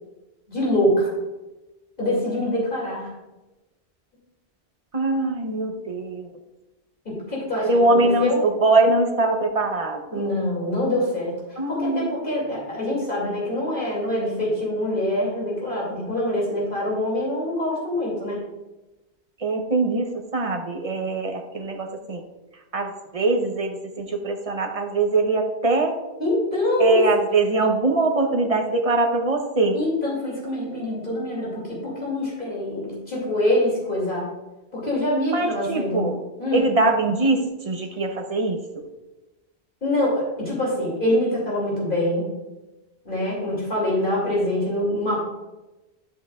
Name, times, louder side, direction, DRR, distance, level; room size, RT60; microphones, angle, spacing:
voice 1, 0.5-1.1 2.0-3.1 7.0-8.4 10.1-18.4 26.2-27.0 29.7-34.3 34.7-36.1 36.4-36.6 39.8-42.3 43.0-45.2, left 1 dB, 55° left, -5 dB, 2.9 m, -24 dB
voice 2, 4.9-6.3 7.7-10.3 11.6-12.2 19.4-22.2 22.7-25.9 26.8-29.8 35.3-36.2 36.5-38.8, right 2 dB, 35° right, 3 dB, 1.0 m, -22 dB
10.5 x 7.8 x 2.4 m, 1.1 s
omnidirectional pair, 1.1 m